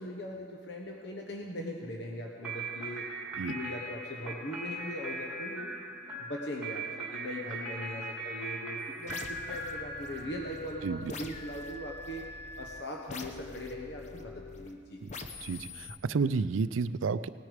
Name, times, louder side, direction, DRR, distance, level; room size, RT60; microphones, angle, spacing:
voice 1, 0.0-3.0 3.4-5.7 6.2-15.0, left 1 dB, 60° left, 0 dB, 1.1 m, -40 dB
sound 1, 2.4-10.7, right 2 dB, 5° right, 2.0 m, -40 dB
sound 2, 9.1-14.7 15.1-16.0, left 2 dB, 35° left, 0.8 m, -44 dB
voice 2, 15.4-17.3, right 4 dB, 90° right, 14 dB, 0.4 m, -31 dB
18.5 x 9.7 x 5.0 m, 2.2 s
head